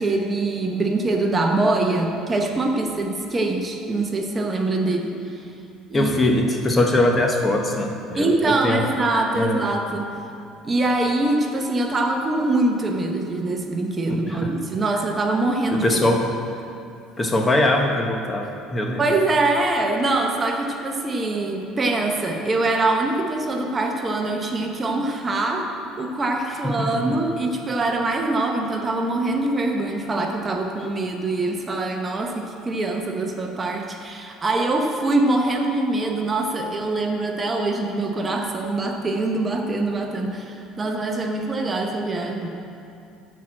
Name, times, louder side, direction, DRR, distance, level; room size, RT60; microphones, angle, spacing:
voice 1, 0.0-5.4 5.9-6.1 6.7-6.8 8.2-10.2 10.6-15.9 19.0-25.7 26.0-42.5, right 2 dB, 25° right, 3 dB, 0.9 m, -23 dB
voice 2, 5.9-8.9 9.3-9.7 14.1-14.5 15.7-16.2 17.2-19.1 26.5-27.2, left 1 dB, 20° left, 2 dB, 0.8 m, -22 dB
10.0 x 4.6 x 7.5 m, 2.6 s
cardioid pair, 125°, 0 cm